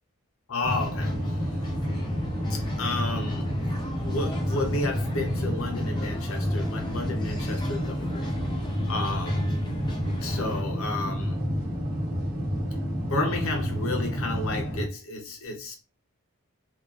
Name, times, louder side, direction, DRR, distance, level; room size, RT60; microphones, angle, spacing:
voice 1, 0.5-1.4 2.5-8.3 8.9-9.5 10.2-11.4 13.0-15.7, left 2 dB, 70° left, 0.7 m, -32 dB
sound 1, 0.6-10.6, left 1 dB, 20° left, 0.4 m, -40 dB
sound 2, 0.6-14.9, equal, 40° right, 1.0 m, -29 dB
2.3 x 2.3 x 2.3 m
head